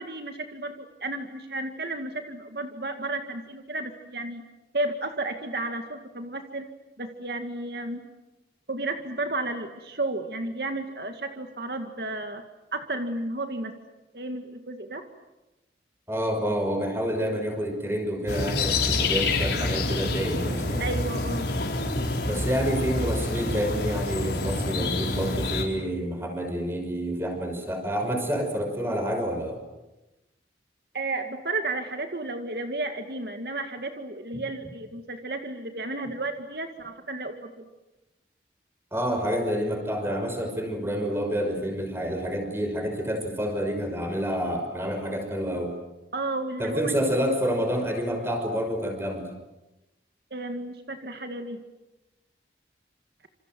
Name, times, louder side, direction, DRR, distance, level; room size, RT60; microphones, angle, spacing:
voice 1, 0.0-4.4 4.7-6.7 7.0-8.0 8.7-12.4 12.7-13.7 14.1-15.0 20.8-21.5 30.9-37.7 46.1-46.9 50.3-51.6, right 2 dB, 65° right, 5 dB, 2.1 m, -32 dB
voice 2, 16.1-20.8 22.2-29.6 34.3-34.4 38.9-45.8 46.6-49.3, equal, 15° right, 5 dB, 5.8 m, -28 dB
sound 1, 18.3-25.6, left 2 dB, 70° left, 4.7 m, -27 dB
28.0 x 27.5 x 7.6 m, 1.0 s
head